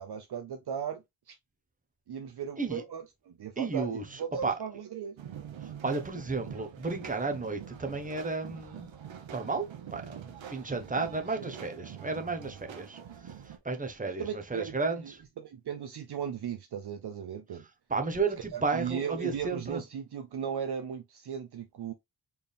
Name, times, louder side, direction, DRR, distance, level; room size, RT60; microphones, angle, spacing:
voice 1, 0.0-1.3 2.1-5.2 11.4-11.5 14.2-17.6 18.5-21.9, right 7 dB, 60° right, 0.7 m, -37 dB
voice 2, 3.6-4.0 4.4-4.5 5.8-8.9 9.3-10.2 10.5-13.0 13.2-15.2 17.9-19.8, right 4 dB, 20° right, 1.0 m, -33 dB
sound 1, 5.2-13.6, right 8 dB, 85° right, 1.0 m, -45 dB
4.3 x 3.4 x 3.4 m
wide cardioid pair, 125°, 45 cm